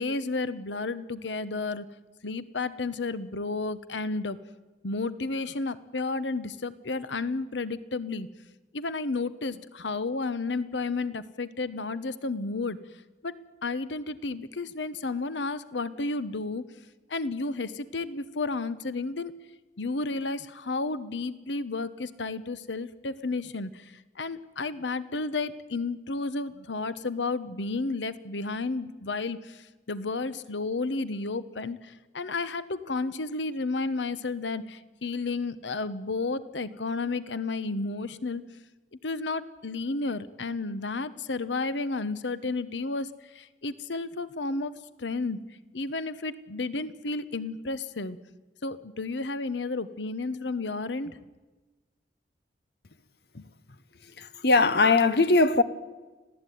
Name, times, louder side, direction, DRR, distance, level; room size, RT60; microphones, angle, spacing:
voice 1, 0.0-1.8 2.2-4.4 4.8-8.3 8.7-12.8 13.2-16.6 17.1-19.3 19.8-38.4 39.0-45.4 45.7-48.2 48.6-51.2, left 3 dB, 90° left, 1.1 m, -32 dB
voice 2, 54.2-55.6, left 3 dB, 65° left, 1.0 m, -21 dB
26.0 x 16.5 x 9.3 m
head